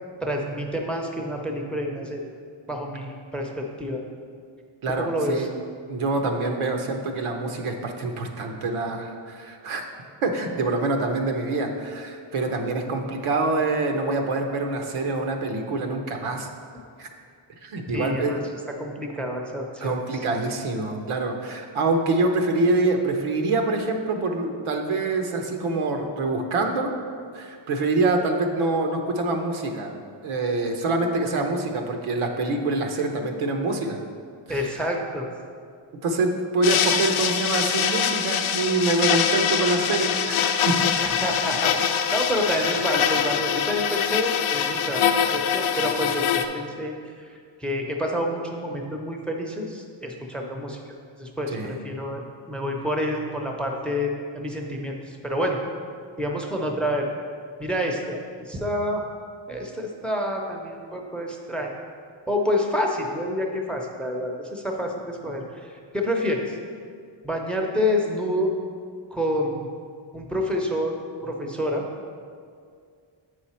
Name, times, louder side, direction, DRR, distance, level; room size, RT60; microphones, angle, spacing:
voice 1, 0.2-2.3 2.7-4.0 5.0-5.5 17.9-18.4 18.8-19.9 34.5-35.3 41.0-41.7 42.1-50.8 51.2-55.6 56.2-57.1 57.6-59.0 59.5-61.7 62.3-66.6 67.2-68.5 69.1-69.7 70.1-71.0 71.2-71.8, equal, ahead, 1 dB, 0.6 m, -28 dB
voice 2, 4.8-5.5 5.9-9.8 10.2-16.5 17.0-17.1 17.6-18.4 19.8-26.9 27.3-29.9 30.2-34.0 36.0-40.8 51.5-51.8, right 2 dB, 85° right, 4 dB, 0.9 m, -25 dB
sound 1, 36.6-46.4, left 8 dB, 80° left, 0.6 m, -24 dB
7.6 x 4.9 x 4.3 m, 2.2 s
wide cardioid pair, 120°, 48 cm